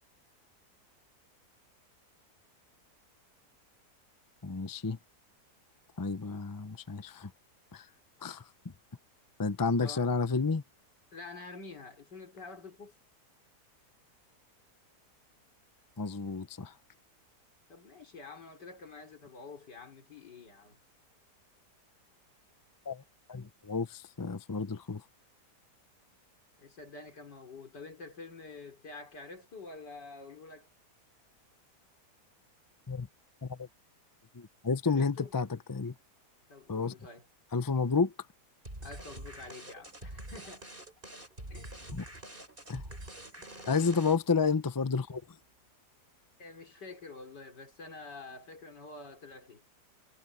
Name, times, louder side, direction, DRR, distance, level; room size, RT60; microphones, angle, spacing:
voice 1, 4.4-5.0 6.0-7.3 7.7-7.9 8.2-8.4 9.4-10.6 16.0-16.7 22.9-23.0 23.3-25.0 32.9-33.1 33.4-33.7 34.3-35.9 36.7-36.9 37.5-38.1 41.9-42.0 42.7-42.8 43.7-45.2, left 4 dB, 25° left, 0.4 m, -31 dB
voice 2, 9.8-10.1 11.1-12.9 17.7-20.8 26.6-30.7 34.8-35.3 36.5-37.3 38.8-40.6 41.5-41.8 43.4-43.7 46.4-49.6, left 3 dB, 90° left, 4.6 m, -48 dB
sound 1, 38.7-44.4, right 1 dB, 30° right, 6.1 m, -46 dB
omnidirectional pair, 1.8 m